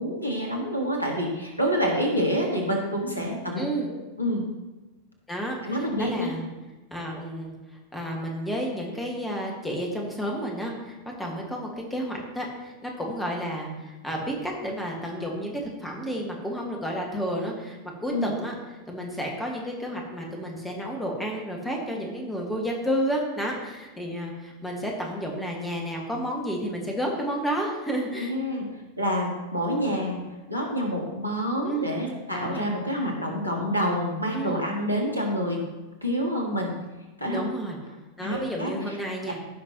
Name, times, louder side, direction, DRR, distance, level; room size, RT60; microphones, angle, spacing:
voice 1, 0.0-4.5 5.6-6.3 18.1-18.3 28.2-35.6 36.0-36.7 37.2-37.5 38.2-39.0, equal, 90° right, -1 dB, 1.7 m, -28 dB
voice 2, 3.6-3.9 5.3-6.5 6.9-7.5 7.9-18.5 18.9-28.3 31.7-31.9 32.3-32.7 34.3-34.6 37.3-37.8 38.2-39.4, equal, 5° left, -1 dB, 1.8 m, -31 dB
14.5 x 5.9 x 3.0 m, 1.2 s
figure-of-eight pair, 90°, 0 cm